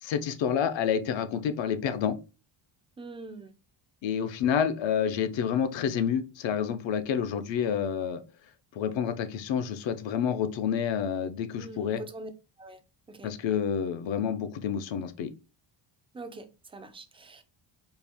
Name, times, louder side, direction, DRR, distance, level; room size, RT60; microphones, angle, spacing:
voice 1, 0.0-2.2 4.0-8.2 8.8-12.0 13.2-15.3, left 8 dB, 60° left, 0.7 m, -28 dB
voice 2, 3.0-3.5 11.6-12.3 12.6-12.8 13.1-13.3 16.1-17.4, right 2 dB, 10° right, 0.4 m, -43 dB
4.5 x 2.4 x 3.4 m
cardioid pair, 130°, 50 cm